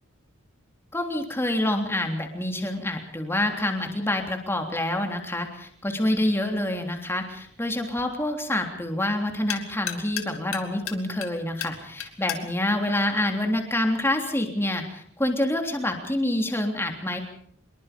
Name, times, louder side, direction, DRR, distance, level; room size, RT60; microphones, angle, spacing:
voice 1, 0.9-17.2, left 1 dB, 10° left, 4 dB, 3.3 m, -27 dB
sound 1, 6.6-14.0, left 9 dB, 80° left, 2.8 m, -39 dB
25.5 x 22.5 x 5.3 m, 0.65 s
head